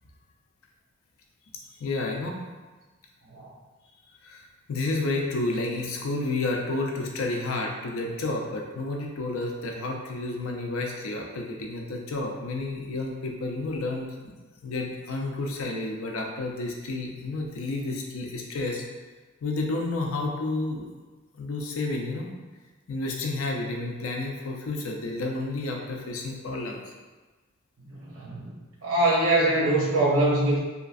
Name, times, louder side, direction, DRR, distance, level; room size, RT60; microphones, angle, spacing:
voice 1, 1.8-2.4 4.2-14.1 14.6-18.8 19.4-20.9 21.3-22.3 22.9-26.8, left 2 dB, 80° left, 1 dB, 0.5 m, -30 dB
voice 2, 27.9-28.5 28.8-30.6, right 2 dB, 70° right, -5 dB, 0.8 m, -23 dB
2.9 x 2.5 x 2.4 m, 1.3 s
head